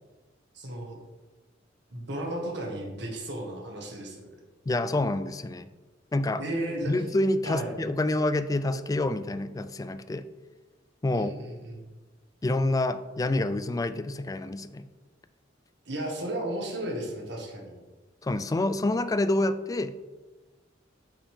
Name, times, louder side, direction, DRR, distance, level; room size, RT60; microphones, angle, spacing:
voice 1, 0.5-1.0 1.9-4.3 6.4-6.9 7.4-7.7 11.1-11.9 15.8-17.7, right 1 dB, 65° right, 0 dB, 1.7 m, -34 dB
voice 2, 4.7-5.7 6.1-6.4 6.8-10.3 11.0-11.3 12.4-14.9 18.2-20.0, left 2 dB, 20° left, 12 dB, 0.3 m, -27 dB
8.4 x 6.0 x 3.6 m, 1.2 s
head